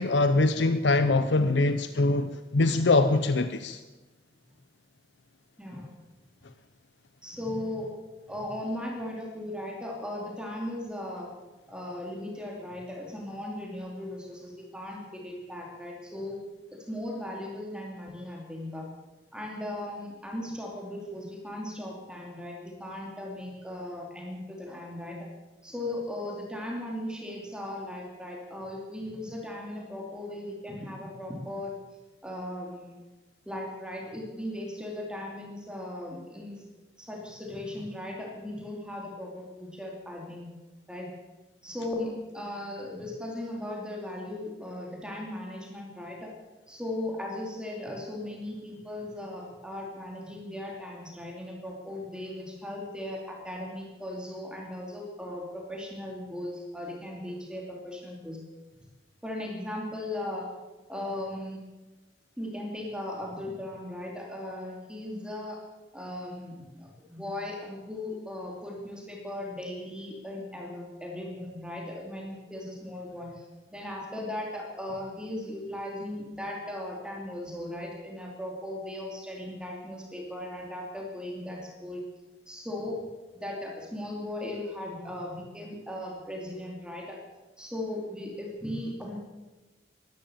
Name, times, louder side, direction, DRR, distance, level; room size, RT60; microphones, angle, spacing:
voice 1, 0.0-3.8, left 2 dB, 80° left, 11 dB, 0.7 m, -23 dB
voice 2, 7.2-7.9 8.3-11.3 11.7-16.4 16.9-18.9 19.3-25.2 25.6-31.7 32.2-33.0 33.5-36.6 37.0-40.5 40.9-41.1 41.6-46.3 46.7-58.4 59.2-60.5 60.9-61.6 62.4-65.6 65.9-73.4 73.7-82.0 82.5-83.0 83.3-87.2 87.6-89.2, left 1 dB, 5° right, -1 dB, 2.9 m, -37 dB
13.5 x 12.0 x 8.8 m, 1.2 s
head